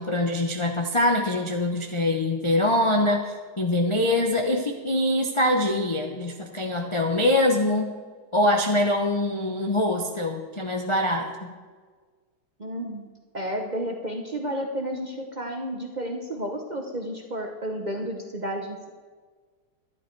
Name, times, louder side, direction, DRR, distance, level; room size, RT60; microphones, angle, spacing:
voice 1, 0.0-7.9 8.3-11.3, left 1 dB, 40° left, 2 dB, 0.4 m, -24 dB
voice 2, 12.6-13.1 13.3-18.9, equal, 35° right, 3 dB, 0.8 m, -31 dB
12.0 x 10.5 x 4.6 m, 1.5 s
omnidirectional pair, 1.9 m